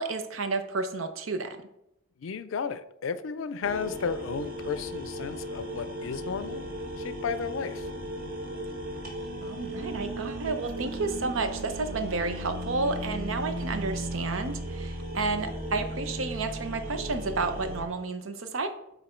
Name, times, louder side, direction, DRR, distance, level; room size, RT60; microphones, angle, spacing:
voice 1, 0.0-1.6 9.4-18.7, right 3 dB, 85° right, 8 dB, 0.7 m, -31 dB
voice 2, 2.2-6.7 7.0-7.9, left 5 dB, 75° left, 13 dB, 0.4 m, -33 dB
sound 1, 3.6-17.8, right 1 dB, 45° right, 1.1 m, -36 dB
8.0 x 2.7 x 4.4 m, 0.81 s
head